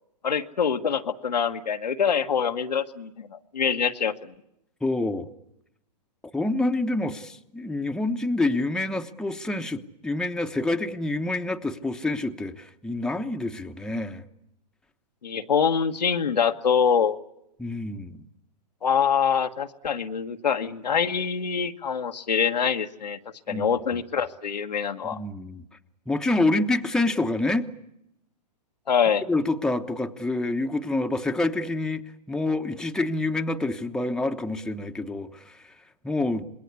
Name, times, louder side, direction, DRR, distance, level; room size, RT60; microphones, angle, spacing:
voice 1, 0.2-4.3 15.2-17.2 18.8-23.2 23.5-25.2 28.9-29.2, left 7 dB, 90° left, 5 dB, 1.5 m, -25 dB
voice 2, 4.8-5.3 6.3-14.2 17.6-18.2 23.5-23.7 25.0-25.6 26.1-27.7 29.3-32.0 32.3-35.6 36.0-36.4, left 2 dB, 5° left, 5 dB, 1.0 m, -27 dB
26.5 x 21.0 x 8.3 m, 0.81 s
hypercardioid pair, 130°, 21 cm